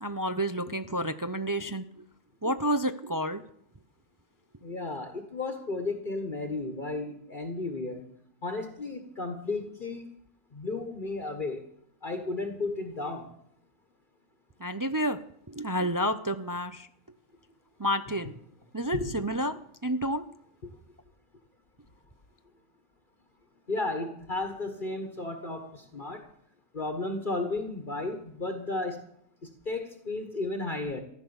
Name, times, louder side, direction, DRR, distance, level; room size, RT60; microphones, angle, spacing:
voice 1, 0.0-1.8 2.4-3.4 14.6-15.2 15.5-16.9 17.8-18.3 18.7-19.6 19.8-20.2, equal, 25° right, 10 dB, 0.5 m, -29 dB
voice 2, 4.6-8.0 8.4-10.1 10.5-11.6 12.0-13.3 18.9-19.2 20.6-20.7 23.7-26.3 26.7-29.0 29.4-31.0, left 2 dB, 40° left, 5 dB, 1.6 m, -33 dB
15.0 x 11.5 x 7.1 m, 0.69 s
omnidirectional pair, 1.3 m